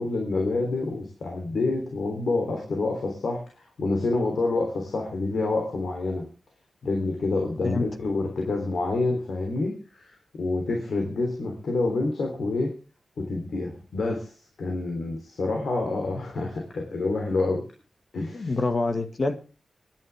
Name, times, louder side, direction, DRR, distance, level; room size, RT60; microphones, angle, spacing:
voice 1, 0.0-6.3 6.8-12.7 13.2-17.6 18.1-18.5, left 3 dB, 80° left, 2 dB, 3.5 m, -28 dB
voice 2, 18.3-19.4, left 3 dB, 50° left, 8 dB, 1.9 m, -26 dB
24.5 x 11.0 x 3.6 m, 0.34 s
cardioid pair, 75°, 0 cm